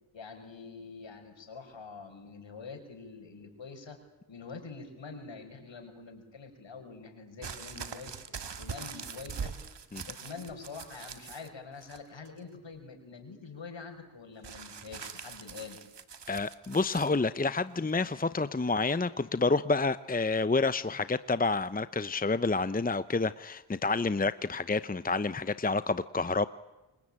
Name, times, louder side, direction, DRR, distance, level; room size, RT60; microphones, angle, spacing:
voice 1, 0.1-4.0 4.3-8.1 8.6-9.7 10.1-15.8, left 4 dB, 60° left, 6 dB, 5.9 m, -45 dB
sound 1, 7.4-11.5 11.8-12.4 14.4-17.1 18.0-18.1, right 6 dB, 55° right, 2.0 m, -42 dB
voice 2, 16.3-26.5, left 3 dB, 15° left, 14 dB, 0.9 m, -29 dB
28.0 x 22.5 x 8.9 m, 1.1 s
supercardioid pair, 45°, 50 cm